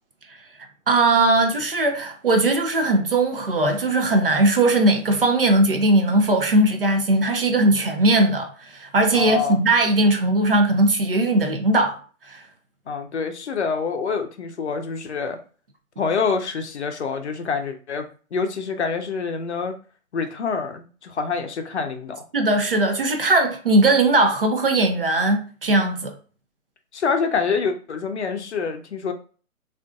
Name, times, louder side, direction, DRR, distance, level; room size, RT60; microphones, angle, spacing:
voice 1, 0.9-12.0 12.3-12.4 22.3-26.1, right 2 dB, 45° right, 0.4 m, -19 dB
voice 2, 9.1-9.6 12.9-15.4 16.0-19.8 20.1-22.2 26.9-29.1, left 5 dB, 55° left, 0.6 m, -26 dB
2.5 x 2.4 x 2.3 m
figure-of-eight pair, 140°, 41 cm